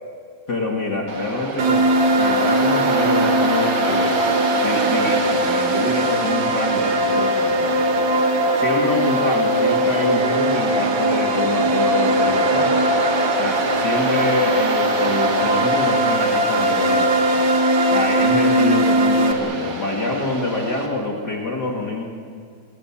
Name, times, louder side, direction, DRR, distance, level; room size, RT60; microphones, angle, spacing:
voice 1, 0.5-4.2 4.6-8.0 8.5-12.9 13.3-17.2 17.9-22.0, left 2 dB, 40° left, 0 dB, 1.4 m, -26 dB
Waves surf, 1.1-20.9, right 3 dB, 40° right, 2.7 m, -28 dB
sound 1, 1.6-19.3, right 1 dB, 80° right, 1.1 m, -20 dB
29.5 x 21.5 x 7.4 m, 2.2 s
omnidirectional pair, 5.2 m